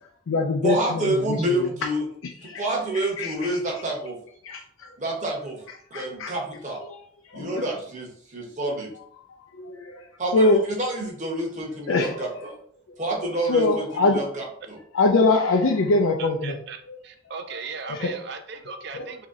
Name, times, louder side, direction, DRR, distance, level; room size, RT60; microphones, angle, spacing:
voice 1, 0.0-1.7 2.4-2.6 2.9-3.6 4.4-5.0 5.9-6.4 6.9-7.6 9.4-10.1 10.3-10.6 11.9-12.3 13.4-14.2 14.9-16.6 16.9-17.0 17.9-18.2 18.9-19.1, left 2 dB, 75° left, 1 dB, 0.4 m, -24 dB
voice 2, 0.6-2.0 2.6-4.2 5.0-5.6 5.9-6.8 7.3-8.9 10.2-12.5 13.0-13.6 14.1-14.8, right 1 dB, 35° right, -2 dB, 0.9 m, -28 dB
voice 3, 16.2-16.8 17.0-19.3, right 5 dB, 50° right, 7 dB, 0.4 m, -37 dB
3.0 x 2.8 x 3.6 m, 0.64 s
head